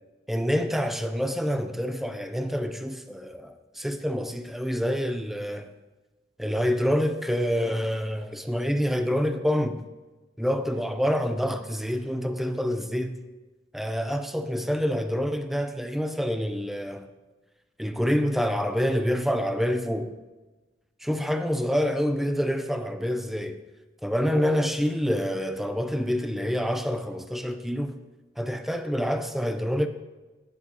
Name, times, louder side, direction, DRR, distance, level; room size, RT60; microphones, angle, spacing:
voice 1, 0.3-5.7 6.4-9.8 10.4-13.2 13.7-17.1 17.8-20.1 21.0-23.6 24.0-28.0 28.4-29.9, equal, ahead, 0.5 m, -27 dB
17.5 x 6.8 x 2.9 m
head